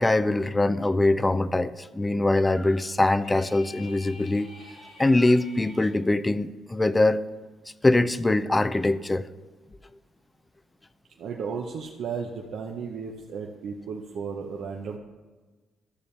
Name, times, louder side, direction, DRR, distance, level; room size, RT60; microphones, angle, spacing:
voice 1, 0.0-4.5 5.0-7.2 7.8-9.3, left 2 dB, 15° left, 14 dB, 0.4 m, -23 dB
sound 1, 3.2-6.0, left 2 dB, 70° left, 2.5 m, -48 dB
voice 2, 11.2-15.0, right 6 dB, 70° right, 0 dB, 0.8 m, -34 dB
13.0 x 7.0 x 3.3 m, 1.3 s
cardioid pair, 90°, 0 cm